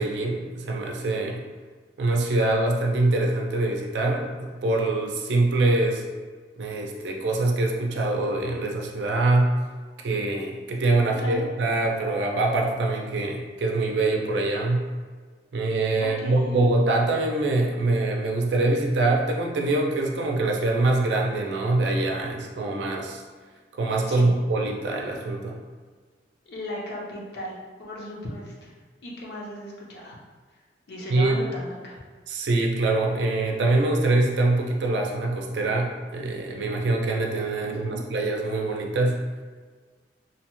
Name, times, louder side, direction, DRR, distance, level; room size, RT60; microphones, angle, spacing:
voice 1, 0.0-1.4 2.0-6.0 6.6-9.5 10.0-14.8 15.5-23.2 23.8-25.6 31.1-31.4 32.3-39.2, right 2 dB, 75° right, 1 dB, 0.4 m, -24 dB
voice 2, 11.1-11.5 16.0-16.7 24.1-24.3 25.0-25.1 26.5-28.8 29.0-30.2 30.9-32.0 37.6-38.0, equal, 65° left, -4 dB, 0.7 m, -37 dB
2.8 x 2.1 x 2.9 m, 1.5 s
head